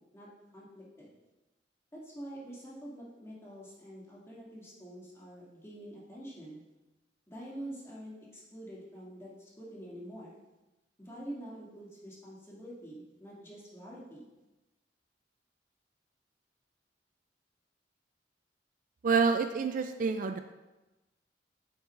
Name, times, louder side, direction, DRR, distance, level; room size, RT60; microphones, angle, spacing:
voice 1, 0.5-1.1 1.9-6.6 7.3-10.4 11.0-14.3, right 1 dB, 15° left, -6 dB, 2.4 m, -46 dB
voice 2, 19.0-20.4, right 5 dB, 50° right, 7 dB, 0.4 m, -27 dB
9.1 x 8.6 x 2.5 m, 1.0 s
head